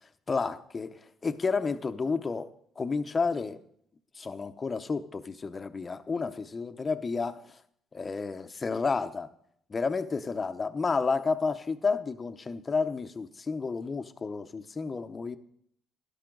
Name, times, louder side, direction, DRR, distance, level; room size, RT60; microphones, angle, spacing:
voice 1, 0.3-2.5 2.8-3.6 4.2-7.4 7.9-9.3 9.7-15.4, left 4 dB, 30° left, 0.8 m, -31 dB
12.0 x 11.5 x 3.9 m
cardioid pair, 100°, 0 cm